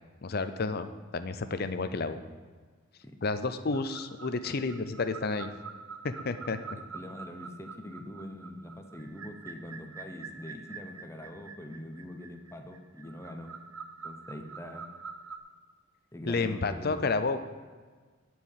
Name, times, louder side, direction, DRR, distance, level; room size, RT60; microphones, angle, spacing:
voice 1, 0.2-2.2 3.2-5.5 6.0-6.6 16.3-17.4, left 3 dB, 45° left, 10 dB, 0.5 m, -31 dB
sound 1, 3.7-15.4, right 5 dB, 80° right, 0.7 m, -46 dB
voice 2, 6.9-13.5 14.0-14.9 16.1-17.0, left 1 dB, 15° left, 4 dB, 0.8 m, -43 dB
10.5 x 4.7 x 8.1 m, 1.5 s
head